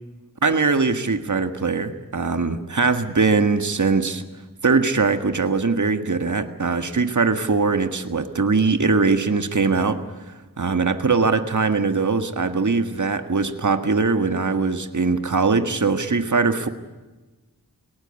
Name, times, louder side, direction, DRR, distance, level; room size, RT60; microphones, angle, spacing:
voice 1, 0.4-4.2 4.6-10.0 10.6-16.7, right 4 dB, 55° right, 8 dB, 1.7 m, -21 dB
20.5 x 18.5 x 9.8 m, 1.2 s
wide cardioid pair, 45°, 35 cm